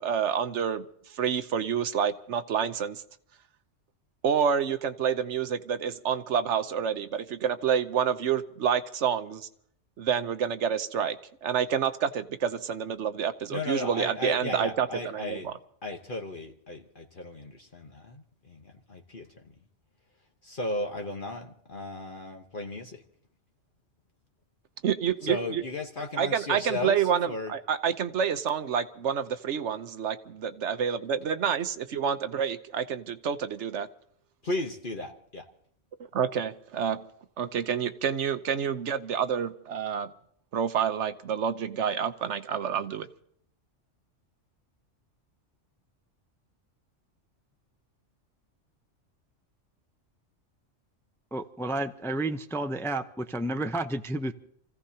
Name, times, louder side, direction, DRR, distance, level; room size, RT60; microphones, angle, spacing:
voice 1, 0.0-3.0 4.2-9.5 10.0-11.2 11.4-15.5 24.8-25.6 26.2-33.9 36.1-37.0 37.4-40.1 40.5-43.1, right 7 dB, 70° right, 11 dB, 1.1 m, -28 dB
voice 2, 13.5-15.5 15.8-19.5 20.4-23.0 25.2-27.5 34.4-35.5, left 2 dB, 45° left, 2 dB, 1.2 m, -35 dB
voice 3, 51.3-54.3, right 2 dB, 5° left, 8 dB, 0.5 m, -31 dB
29.0 x 16.0 x 2.8 m, 0.67 s
omnidirectional pair, 1.2 m